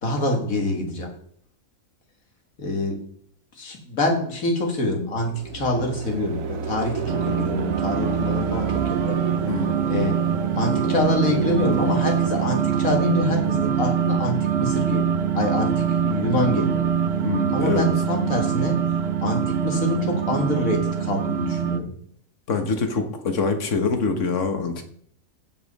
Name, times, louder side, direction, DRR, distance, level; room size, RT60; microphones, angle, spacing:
voice 1, 0.0-1.1 2.6-3.0 3.6-9.2 9.9-10.2 10.6-16.8 17.5-18.8 19.2-21.9, left 2 dB, 90° left, 2 dB, 2.3 m, -26 dB
sound 1, 5.2-14.3, right 5 dB, 80° right, 1.4 m, -32 dB
sound 2, 7.1-21.8, right 8 dB, 55° right, 0.8 m, -24 dB
voice 2, 9.5-9.8 17.2-17.9 22.5-24.8, left 4 dB, 65° left, 6 dB, 1.6 m, -24 dB
15.5 x 5.4 x 4.1 m, 0.62 s
omnidirectional pair, 1.4 m